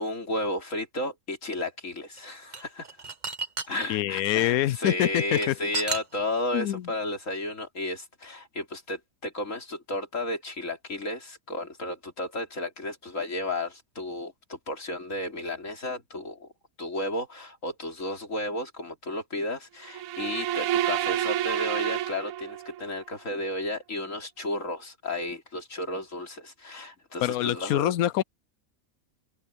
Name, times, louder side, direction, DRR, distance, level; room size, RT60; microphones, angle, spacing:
voice 1, 0.0-2.9 3.7-16.5 16.8-27.9, left 1 dB, 65° left, 4.0 m, -33 dB
sound 1, 2.2-4.3 5.0-6.6, right 4 dB, 35° right, 1.3 m, -33 dB
voice 2, 3.9-5.5 6.5-6.8 27.2-28.2, left 13 dB, 90° left, 1.1 m, -25 dB
sound 2, 19.9-22.9, right 12 dB, 75° right, 1.0 m, -29 dB
omnidirectional pair, 1.5 m